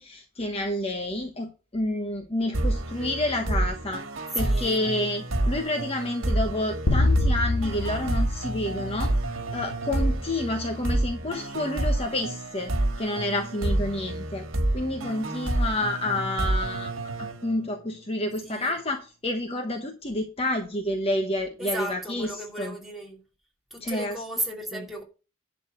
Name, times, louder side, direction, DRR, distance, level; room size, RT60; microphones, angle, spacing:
voice 1, 0.0-4.0 4.3-14.5 14.7-22.3 22.6-22.7 23.8-24.2 24.7-24.9, left 1 dB, 30° left, 1.1 m, -29 dB
sound 1, 2.5-18.0, right 1 dB, 80° right, 1.6 m, -29 dB
voice 2, 4.4-4.8 18.4-18.7 21.6-23.2 23.7-25.0, right 1 dB, ahead, 2.5 m, -34 dB
sound 2, 6.9-9.5, left 2 dB, 85° left, 2.2 m, -26 dB
11.0 x 4.1 x 7.6 m
head